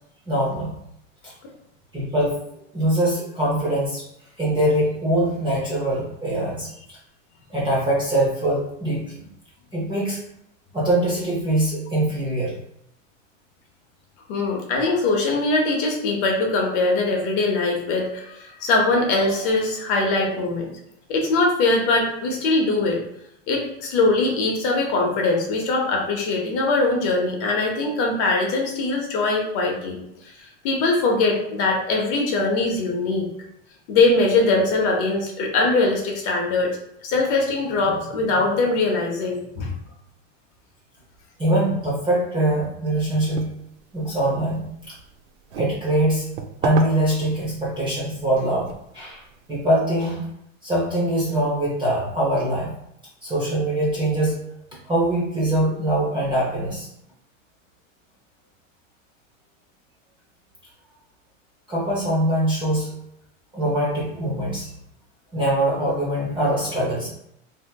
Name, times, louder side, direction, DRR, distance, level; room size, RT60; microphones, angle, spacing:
voice 1, 0.3-0.7 1.9-2.4 2.7-4.1 4.4-7.0 7.5-9.2 9.7-10.2 10.7-12.5 41.4-43.5 43.9-44.9 45.6-46.3 46.6-49.2 49.5-50.2 50.6-52.7 53.2-54.4 54.9-56.9 61.7-62.9 63.5-64.7 65.3-67.1, right 1 dB, 10° right, -6 dB, 0.5 m, -23 dB
voice 2, 14.3-20.7 21.1-23.0 23.5-30.0 30.4-33.3 33.9-36.8 37.0-39.7, left 3 dB, 35° left, 0 dB, 0.7 m, -22 dB
sound 1, 43.1-49.6, right 7 dB, 60° right, 0.5 m, -37 dB
3.3 x 2.7 x 2.2 m, 0.77 s
supercardioid pair, 140°, 39 cm